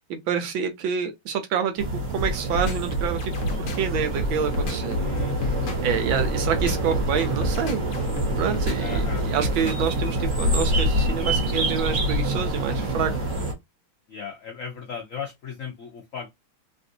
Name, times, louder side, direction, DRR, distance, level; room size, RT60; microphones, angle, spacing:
voice 1, 0.3-3.3 3.6-4.9 5.8-7.8 8.4-13.1, right 7 dB, 75° right, 1.4 m, -27 dB
sound 1, 1.8-13.5, right 1 dB, 45° right, 1.4 m, -26 dB
sound 2, 2.2-9.9, equal, 55° left, 1.1 m, -30 dB
voice 2, 5.0-6.4 8.8-9.2 14.1-16.4, left 7 dB, 75° left, 0.7 m, -36 dB
3.5 x 2.5 x 2.6 m
omnidirectional pair, 2.3 m